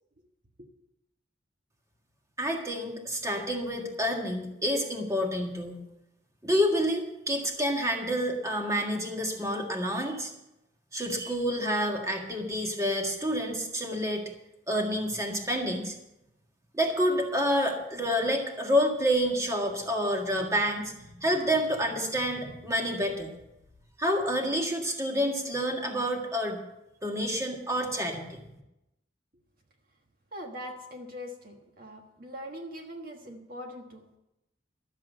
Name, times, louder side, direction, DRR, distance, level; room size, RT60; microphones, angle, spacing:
voice 1, 2.4-5.8 6.4-10.3 10.9-14.2 14.7-15.9 16.7-23.3 24.0-26.6 27.0-28.4, equal, 15° right, 1 dB, 1.8 m, -28 dB
voice 2, 30.3-34.1, equal, 50° right, 2 dB, 1.4 m, -42 dB
12.5 x 7.4 x 7.9 m, 0.88 s
head